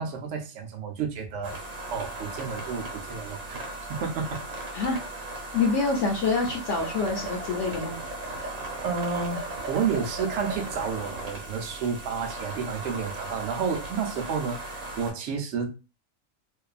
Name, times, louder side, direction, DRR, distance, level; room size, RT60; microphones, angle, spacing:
voice 1, 0.0-1.6 1.9-3.6 3.9-4.4 8.8-15.8, right 6 dB, 65° right, 0.9 m, -31 dB
sound 1, 1.4-15.1, right 2 dB, 85° right, 1.3 m, -37 dB
voice 2, 5.5-8.0, left 4 dB, 70° left, 0.9 m, -26 dB
2.6 x 2.3 x 2.3 m
omnidirectional pair, 1.4 m